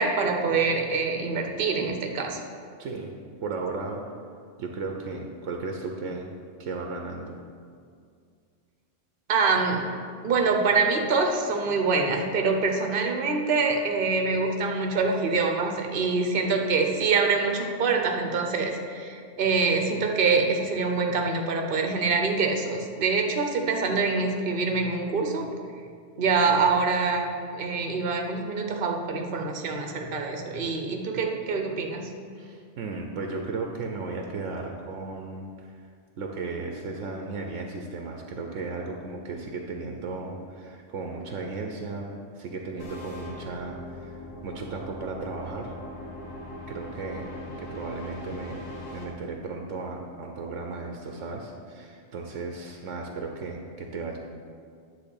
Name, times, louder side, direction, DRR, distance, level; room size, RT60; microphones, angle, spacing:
voice 1, 0.0-2.4 9.3-9.8 10.2-25.4 26.2-32.1, right 4 dB, 50° right, 2 dB, 1.0 m, -25 dB
voice 2, 2.8-3.2 3.4-4.0 4.6-7.4 32.4-35.9 36.2-45.8 46.7-47.3 47.6-54.2, right 3 dB, 80° right, 2 dB, 1.1 m, -35 dB
sound 1, 42.8-49.0, left 1 dB, 80° left, 2.1 m, -40 dB
9.8 x 3.8 x 7.1 m, 2.2 s
omnidirectional pair, 1.3 m